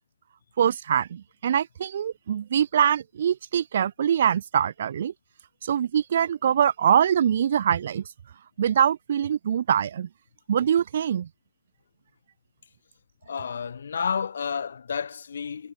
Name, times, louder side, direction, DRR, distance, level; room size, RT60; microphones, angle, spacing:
voice 1, 0.6-5.1 5.6-8.0 8.6-10.1 10.5-11.3, right 9 dB, 65° right, 2.7 m, -23 dB
voice 2, 13.3-15.7, left 6 dB, 75° left, 5.4 m, -30 dB
hypercardioid pair, 130°, 0 cm